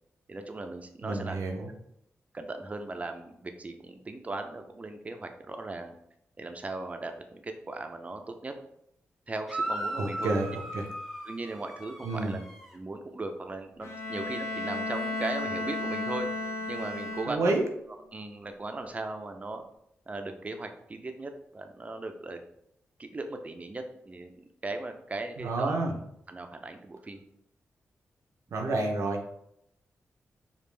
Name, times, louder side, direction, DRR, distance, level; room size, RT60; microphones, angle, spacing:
voice 1, 0.3-1.4 2.3-5.9 6.4-8.5 9.3-10.3 11.2-12.4 12.7-16.3 16.7-17.5 17.9-19.6 20.1-22.4 23.0-25.8 26.3-27.2, right 2 dB, 30° right, 6 dB, 0.5 m, -38 dB
voice 2, 1.0-1.7 10.0-10.9 12.0-12.4 17.3-17.6 25.4-25.9 28.5-29.3, right 2 dB, 85° right, 2 dB, 0.7 m, -29 dB
sound 1, 9.5-12.7, right 1 dB, ahead, 0.9 m, -37 dB
Bowed string instrument, 13.8-17.8, left 2 dB, 85° left, 0.6 m, -34 dB
5.1 x 2.4 x 3.3 m, 0.77 s
cardioid pair, 75°, 5 cm